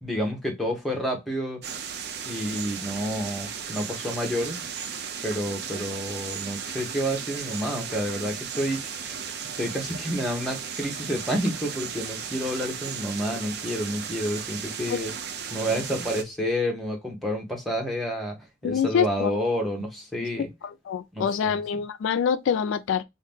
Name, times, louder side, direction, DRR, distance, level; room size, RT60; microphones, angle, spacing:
voice 1, 0.0-1.6 2.2-4.6 5.2-9.1 9.6-15.1 15.5-18.4 18.6-20.5 21.1-21.8, equal, ahead, 0.9 m, -29 dB
sound 1, 1.6-16.2, right 7 dB, 55° right, 0.5 m, -35 dB
voice 2, 18.6-19.3 20.9-23.0, left 7 dB, 75° left, 0.3 m, -25 dB
2.8 x 2.6 x 3.4 m
head